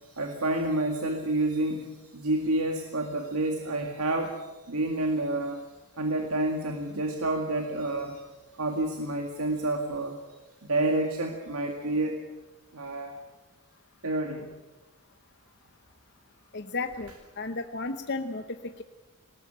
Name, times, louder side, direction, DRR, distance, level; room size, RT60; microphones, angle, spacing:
voice 1, 0.1-5.6 6.0-8.2 8.6-10.2 10.6-12.2 12.7-13.1 14.0-14.5, right 2 dB, 85° right, 3 dB, 2.0 m, -29 dB
voice 2, 16.5-17.1 17.4-18.4 18.8-18.9, left 3 dB, 50° left, 8 dB, 0.9 m, -33 dB
20.5 x 18.0 x 8.7 m, 1.2 s
head